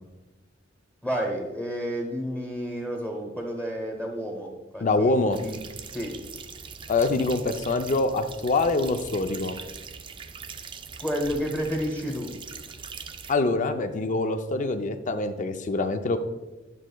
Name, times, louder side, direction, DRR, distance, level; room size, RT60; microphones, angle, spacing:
voice 1, 1.0-5.6 5.9-6.2 11.0-12.3, equal, 10° left, 1 dB, 1.1 m, -31 dB
voice 2, 4.8-5.4 6.9-9.6 13.3-16.2, left 3 dB, 40° left, 8 dB, 0.5 m, -25 dB
sound 1, 5.3-13.3, right 6 dB, 25° right, 0.3 m, -41 dB
9.9 x 6.1 x 2.3 m, 1.2 s
head